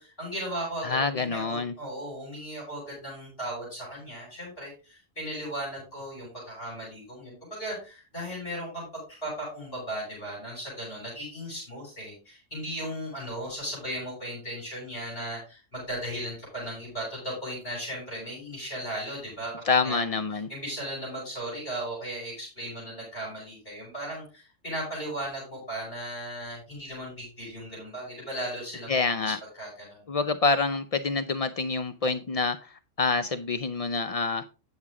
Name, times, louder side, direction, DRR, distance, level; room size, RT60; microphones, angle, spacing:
voice 1, 0.0-8.8 9.1-20.0 20.5-30.1, right 1 dB, 45° left, -4 dB, 5.7 m, -36 dB
voice 2, 0.8-1.7 19.7-20.5 28.9-29.4 30.1-34.4, left 4 dB, 65° left, 10 dB, 0.3 m, -27 dB
9.5 x 7.2 x 3.6 m, 0.32 s
omnidirectional pair, 1.3 m